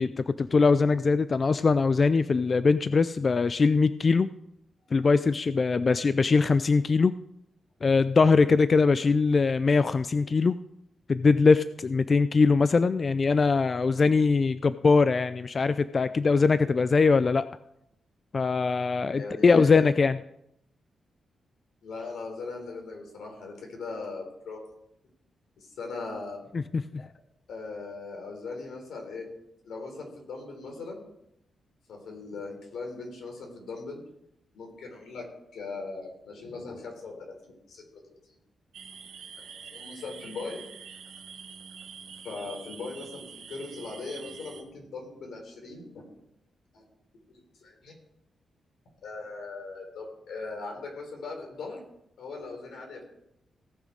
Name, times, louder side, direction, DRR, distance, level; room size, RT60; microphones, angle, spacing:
voice 1, 0.0-4.3 4.9-7.2 7.8-10.6 11.1-17.5 18.3-20.2 26.5-27.0, left 4 dB, 35° left, 13 dB, 0.4 m, -22 dB
voice 2, 19.1-19.9 21.8-24.6 25.6-26.4 27.5-29.3 29.6-31.0 31.9-34.0 34.5-35.2 35.5-37.3 37.7-37.8 39.5-40.6 42.2-46.1 46.7-46.8 47.3-47.9 49.0-51.8 52.2-53.0, left 3 dB, 85° left, 2 dB, 3.8 m, -39 dB
sound 1, 38.7-44.6, right 6 dB, 85° right, 1.5 m, -46 dB
17.5 x 6.3 x 5.1 m, 0.80 s
wide cardioid pair, 130°, 0 cm